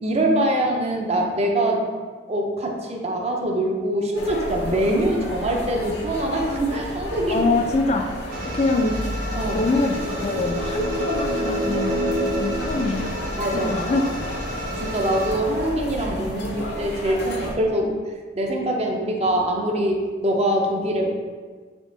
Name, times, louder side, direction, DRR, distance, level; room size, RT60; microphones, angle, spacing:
voice 1, 0.0-1.8 2.3-7.5 9.3-9.6 13.4-14.1 14.8-21.1, right 1 dB, 35° right, 1 dB, 0.6 m, -24 dB
sound 1, 4.2-17.6, left 1 dB, 70° left, 0.8 m, -32 dB
voice 2, 7.3-8.1 8.4-9.0 9.5-12.0 12.4-13.1 13.5-14.0, left 3 dB, 40° left, 4 dB, 0.3 m, -24 dB
sound 2, 8.3-15.3, equal, 60° right, 1.1 m, -33 dB
sound 3, 9.7-13.6, equal, 75° right, 1.2 m, -28 dB
3.6 x 3.5 x 3.8 m, 1.5 s
head